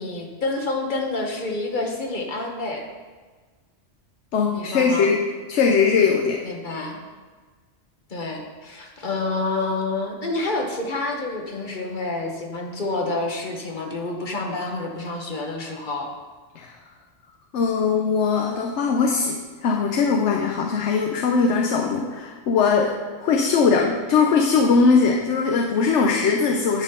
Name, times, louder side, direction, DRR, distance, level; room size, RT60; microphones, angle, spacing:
voice 1, 0.0-2.9 4.5-5.1 6.4-7.0 8.1-16.1, left 2 dB, 45° left, 1 dB, 1.2 m, -28 dB
voice 2, 4.3-5.2 5.5-6.4 16.6-16.7 17.5-19.4 19.6-22.9 23.2-26.8, left 5 dB, 90° left, 1 dB, 1.0 m, -20 dB
11.0 x 4.1 x 5.5 m, 1.4 s
omnidirectional pair, 1.2 m